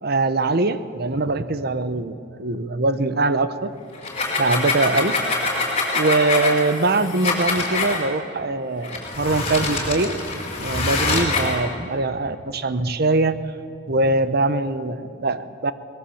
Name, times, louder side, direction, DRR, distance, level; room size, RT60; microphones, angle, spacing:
voice 1, 0.0-3.7 4.4-5.2 5.9-10.2 10.6-13.4 13.9-15.7, right 2 dB, 55° right, 13 dB, 1.0 m, -22 dB
sound 1, 3.9-8.0 8.8-11.6, left 3 dB, 35° left, 4.7 m, -24 dB
23.0 x 20.0 x 7.1 m, 2.6 s
head